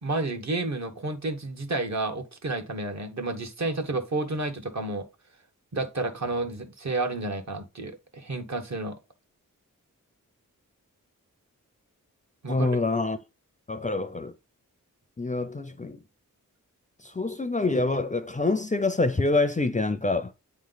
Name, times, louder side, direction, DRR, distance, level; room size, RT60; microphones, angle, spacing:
voice 1, 0.0-5.1 5.7-9.0 12.4-12.8, right 2 dB, 55° right, 1.3 m, -31 dB
voice 2, 12.5-13.2 13.7-14.3 15.2-16.0 17.0-20.3, left 3 dB, 25° left, 0.5 m, -26 dB
8.8 x 3.2 x 4.0 m
wide cardioid pair, 85°, 33 cm